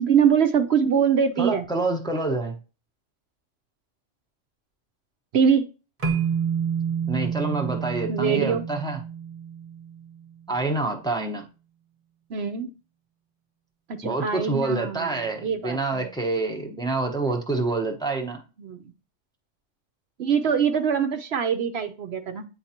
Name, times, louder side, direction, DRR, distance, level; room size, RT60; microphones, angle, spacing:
voice 1, 0.0-1.6 5.3-5.7 8.1-8.6 12.3-12.7 13.9-16.1 18.6-18.9 20.2-22.4, right 7 dB, 65° right, 7 dB, 0.8 m, -23 dB
voice 2, 1.4-2.6 7.1-9.0 10.5-11.4 14.0-18.4, right 3 dB, 5° left, 2 dB, 0.9 m, -27 dB
sound 1, 6.0-10.3, right 7 dB, 35° right, 0.9 m, -29 dB
9.1 x 3.9 x 2.9 m, 0.32 s
omnidirectional pair, 1.3 m